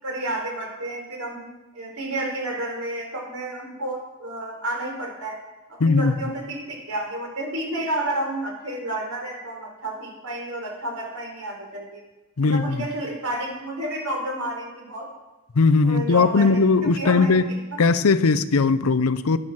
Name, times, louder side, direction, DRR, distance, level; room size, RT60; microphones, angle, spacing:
voice 1, 0.0-5.4 5.7-12.0 12.4-15.1 15.8-17.8, right 1 dB, 85° right, 4.0 m, -31 dB
voice 2, 5.8-6.2 12.4-12.9 15.5-17.5 17.8-19.4, left 4 dB, 70° left, 0.6 m, -19 dB
11.0 x 10.5 x 5.8 m
head